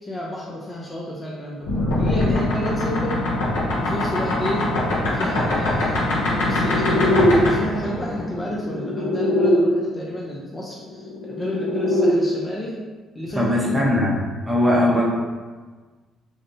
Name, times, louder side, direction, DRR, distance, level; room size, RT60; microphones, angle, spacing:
voice 1, 0.0-3.2 3.8-4.7 5.1-12.8 13.1-13.9 14.6-15.0, equal, 25° left, -4 dB, 0.5 m, -31 dB
sound 1, 1.6-9.5 10.8-12.1, left 1 dB, 90° left, 0.6 m, -22 dB
voice 2, 13.4-14.2 14.5-15.0, left 1 dB, 10° right, -4 dB, 0.7 m, -19 dB
2.6 x 2.0 x 2.6 m, 1.4 s
supercardioid pair, 60°, 0 cm